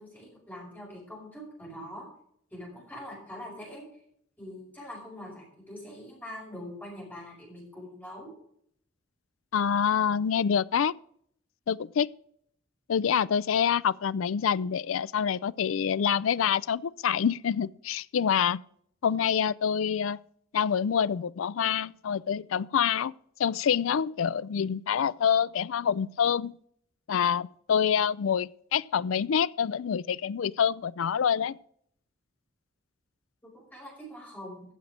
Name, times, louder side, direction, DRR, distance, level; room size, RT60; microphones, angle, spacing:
voice 1, 0.0-2.1 2.5-3.8 4.4-8.3 33.5-34.6, left 1 dB, 10° left, 5.5 m, -43 dB
voice 2, 9.5-10.9 11.7-12.1 12.9-18.6 19.0-20.2 20.5-23.1 23.4-26.5 27.1-31.6, left 7 dB, 85° left, 0.4 m, -26 dB
15.0 x 7.2 x 5.0 m
head